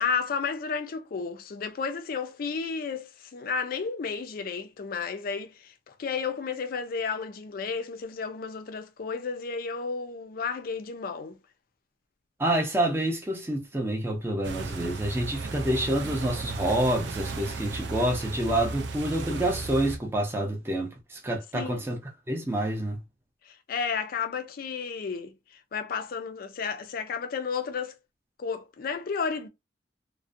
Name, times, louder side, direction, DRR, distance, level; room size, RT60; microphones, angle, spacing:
voice 1, 0.0-11.4 21.5-21.8 23.4-28.0 28.4-29.5, left 5 dB, 50° left, 0.4 m, -32 dB
voice 2, 12.4-22.0 22.3-23.0, right 1 dB, 15° right, 0.5 m, -28 dB
sound 1, 14.4-20.0, right 4 dB, 65° right, 0.4 m, -35 dB
2.4 x 2.1 x 2.5 m
head